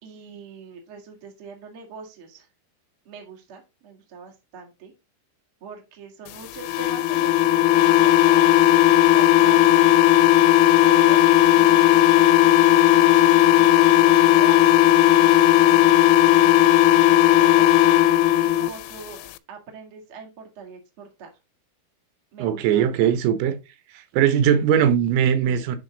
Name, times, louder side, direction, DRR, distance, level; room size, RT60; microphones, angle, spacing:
voice 1, 0.0-2.5 3.0-4.9 5.6-9.8 10.8-17.7 18.4-21.3 22.3-23.1, right 5 dB, 55° right, 1.4 m, -42 dB
sound 1, 6.6-18.7, left 13 dB, 85° left, 3.1 m, -16 dB
voice 2, 22.4-23.6 23.9-25.8, right 9 dB, 85° right, 3.7 m, -20 dB
10.0 x 3.9 x 4.0 m
omnidirectional pair, 6.0 m